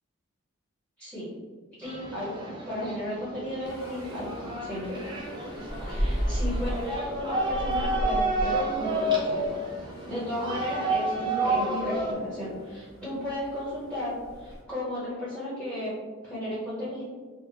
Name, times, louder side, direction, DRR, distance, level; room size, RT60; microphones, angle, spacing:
voice 1, 1.0-1.3 1.8-5.0 5.9-9.4 10.1-15.9 16.2-17.0, left 1 dB, ahead, -11 dB, 1.2 m, -34 dB
sound 1, 1.8-12.1, right 1 dB, 25° right, 0.6 m, -30 dB
sound 2, 3.6-14.6, equal, 65° left, 0.9 m, -36 dB
3.7 x 2.4 x 2.9 m, 1.4 s
head